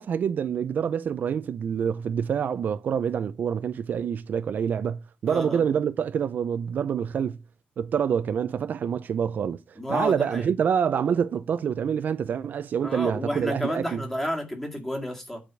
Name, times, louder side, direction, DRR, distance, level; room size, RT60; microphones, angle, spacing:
voice 1, 0.0-7.4 7.8-14.0, right 7 dB, 55° right, 0.5 m, -26 dB
voice 2, 5.3-5.6 9.8-10.5 12.8-15.4, equal, 10° left, 2.1 m, -31 dB
9.2 x 5.0 x 7.4 m
wide cardioid pair, 180°, 4 cm